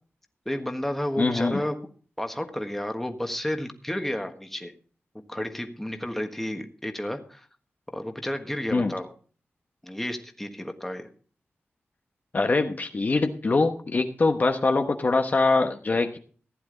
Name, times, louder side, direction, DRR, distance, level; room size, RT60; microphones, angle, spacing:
voice 1, 0.4-1.8 2.2-4.7 5.3-7.5 7.9-9.1 9.8-11.1, left 1 dB, 5° left, 5 dB, 1.5 m, -31 dB
voice 2, 1.2-1.6 8.7-9.0 12.3-16.2, left 3 dB, 40° left, 5 dB, 1.0 m, -23 dB
15.5 x 10.5 x 3.9 m, 0.42 s
wide cardioid pair, 130°, 4 cm